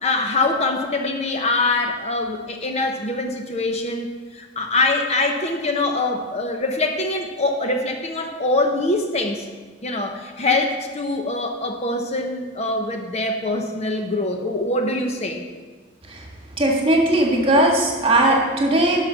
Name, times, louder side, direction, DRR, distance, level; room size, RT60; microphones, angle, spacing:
voice 1, 0.0-9.5 9.8-15.4, left 2 dB, 35° left, 4 dB, 0.8 m, -23 dB
voice 2, 16.6-19.0, right 1 dB, 30° right, 0 dB, 1.8 m, -18 dB
11.0 x 5.8 x 5.7 m, 1.4 s
head